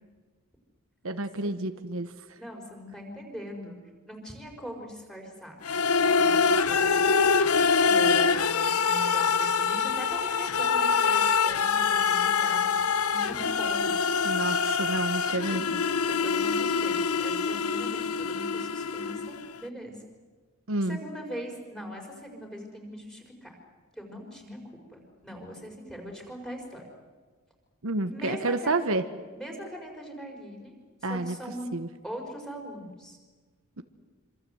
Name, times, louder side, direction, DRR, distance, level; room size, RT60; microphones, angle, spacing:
voice 1, 1.0-2.1 14.2-15.6 20.7-21.0 27.8-29.0 31.0-31.4 31.7-31.9 33.8-33.9, right 2 dB, 70° right, 8 dB, 1.3 m, -29 dB
voice 2, 2.4-3.8 4.1-5.6 6.1-7.1 7.8-13.9 15.3-15.7 16.1-20.0 20.8-23.5 24.0-24.6 24.9-26.8 28.1-28.8 29.3-30.7 31.0-31.7 32.0-33.2, equal, 5° left, 1 dB, 5.1 m, -41 dB
sound 1, 5.6-19.5, left 5 dB, 90° left, 0.9 m, -25 dB
26.5 x 26.0 x 8.0 m, 1.4 s
head